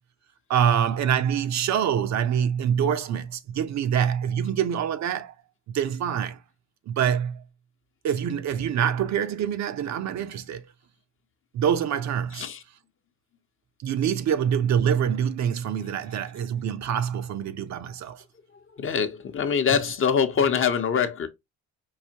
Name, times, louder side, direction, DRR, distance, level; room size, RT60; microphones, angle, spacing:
voice 1, 0.5-5.3 5.7-6.4 6.9-7.4 8.0-10.7 11.5-12.5 13.8-18.2 19.7-19.8, right 8 dB, 65° right, 0.6 m, -25 dB
voice 2, 18.8-21.3, left 7 dB, 45° left, 0.7 m, -24 dB
4.8 x 2.7 x 2.7 m
cardioid pair, 90°, 30 cm